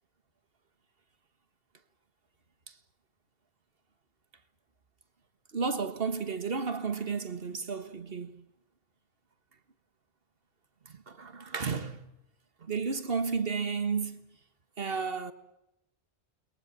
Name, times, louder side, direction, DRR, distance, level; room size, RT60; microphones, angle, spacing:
voice 1, 5.5-8.4 10.9-12.0 12.6-14.2 14.8-15.3, right 5 dB, 60° right, 1.7 m, -32 dB
29.5 x 22.0 x 7.5 m
omnidirectional pair, 1.1 m